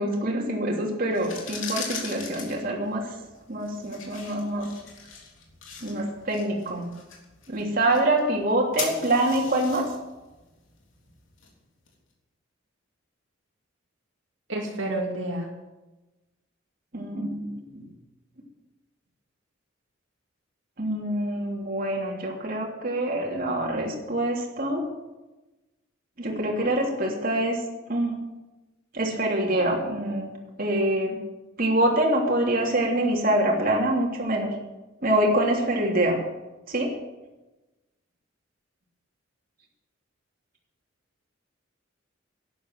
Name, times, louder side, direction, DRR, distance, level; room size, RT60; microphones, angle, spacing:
voice 1, 0.0-3.1 3.5-4.7 5.8-6.9 7.5-9.9 16.9-17.9 20.8-24.9 26.2-27.6 27.9-28.2 28.9-30.3 30.6-31.2 31.6-34.5 35.0-36.2 36.7-37.0, right 1 dB, 45° right, -1 dB, 3.1 m, -25 dB
sound 1, 1.0-11.9, left 5 dB, 85° left, 3.3 m, -40 dB
voice 2, 14.5-15.5, right 1 dB, 75° right, -1 dB, 2.5 m, -29 dB
12.0 x 10.5 x 7.6 m, 1.1 s
head